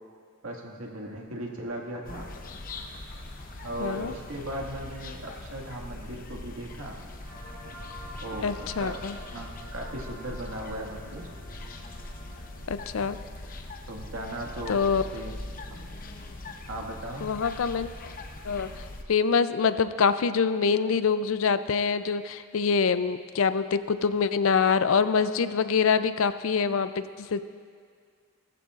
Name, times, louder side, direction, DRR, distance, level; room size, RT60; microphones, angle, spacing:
voice 1, 0.4-2.3 3.6-7.0 8.2-11.3 13.9-15.3 15.7-15.8 16.6-17.3, right 1 dB, 80° right, 0 dB, 1.9 m, -37 dB
sound 1, 2.0-19.0, left 2 dB, 40° left, 0.8 m, -41 dB
voice 2, 3.8-4.2 8.4-9.2 12.7-13.2 14.7-15.0 17.2-17.9 18.4-27.4, left 5 dB, 65° left, 12 dB, 0.4 m, -25 dB
sound 2, 7.2-12.6, equal, 15° right, 2.8 m, -47 dB
19.5 x 14.5 x 2.5 m, 2.1 s
head